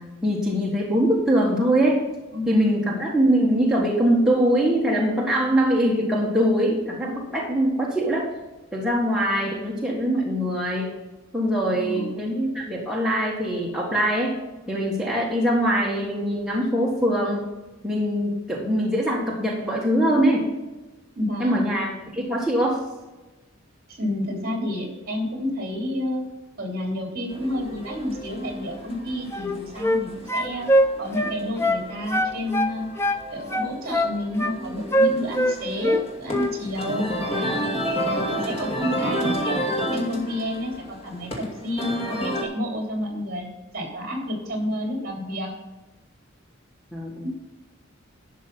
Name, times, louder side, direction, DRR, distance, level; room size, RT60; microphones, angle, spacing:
voice 1, 0.0-2.0 2.5-8.3 8.7-10.9 11.3-14.4 14.7-17.5 17.8-20.5 21.4-22.8 46.9-47.3, equal, 5° right, -4 dB, 1.6 m, -22 dB
voice 2, 2.3-2.7 11.6-12.1 21.1-21.8 23.9-26.2 26.6-30.7 31.0-32.9 33.3-37.6 38.0-43.5 43.7-45.5, equal, 50° right, 2 dB, 3.3 m, -30 dB
sound 1, 27.3-42.4, equal, 30° left, 2.4 m, -31 dB
sound 2, 29.3-30.0 30.3-31.8 32.1-33.2 33.5-34.6 34.9-36.0 36.3-36.5, equal, 15° left, 0.7 m, -22 dB
11.0 x 6.5 x 5.5 m, 1.1 s
head